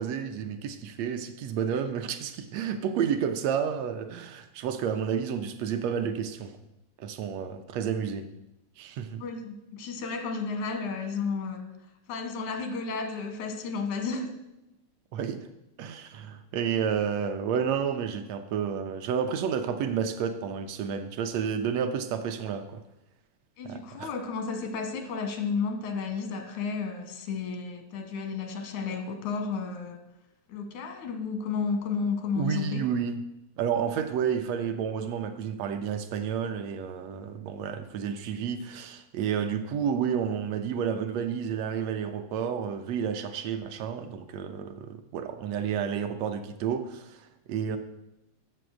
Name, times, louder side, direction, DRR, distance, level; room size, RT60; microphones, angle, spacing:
voice 1, 0.0-6.5 7.0-8.3 8.8-9.2 15.1-15.4 15.8-22.8 23.6-24.1 32.4-33.2 33.6-47.8, right 7 dB, 75° right, 8 dB, 1.6 m, -30 dB
voice 2, 9.2-11.7 12.1-14.4 23.6-30.0 30.5-32.8, left 5 dB, 85° left, 6 dB, 2.6 m, -32 dB
7.8 x 6.9 x 6.2 m, 0.91 s
omnidirectional pair, 3.3 m